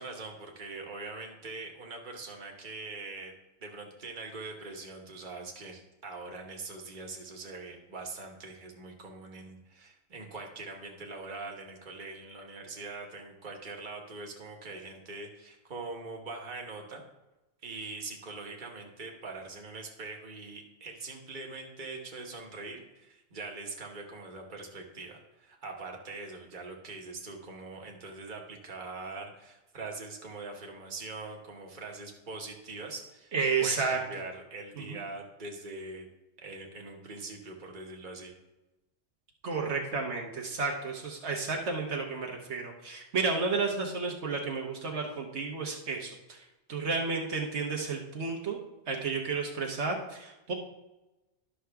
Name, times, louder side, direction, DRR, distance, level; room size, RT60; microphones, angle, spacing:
voice 1, 0.0-3.3 3.6-17.0 17.6-33.3 33.6-36.1 36.4-38.3, right 3 dB, 45° right, 1 dB, 1.4 m, -42 dB
voice 2, 33.3-34.0 34.8-35.0 39.4-46.4 46.7-48.6 48.9-50.5, right 4 dB, 70° right, 0 dB, 1.3 m, -32 dB
11.5 x 6.2 x 3.4 m, 1.0 s
omnidirectional pair, 1.2 m